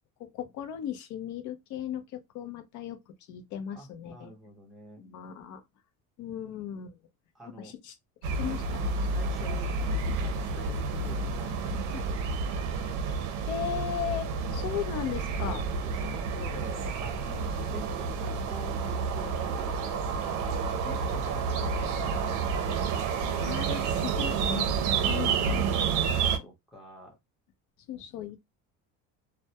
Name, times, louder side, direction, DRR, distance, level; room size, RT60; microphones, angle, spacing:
voice 1, 0.2-3.0 3.3-4.3 5.0-5.6 6.2-6.9 7.6-7.9 8.4-9.1 11.9-12.0 13.5-15.6 17.3-17.5 23.4-24.7 25.1-25.6 27.9-28.4, left 10 dB, 60° left, 0.6 m, -36 dB
voice 2, 3.7-5.0 7.3-7.8 9.0-13.0 15.4-17.4 17.7-23.5 25.9-27.2, equal, ahead, 0.7 m, -48 dB
sound 1, 8.2-26.4, right 5 dB, 60° right, 0.6 m, -30 dB
2.2 x 2.1 x 2.7 m
cardioid pair, 175°, 33 cm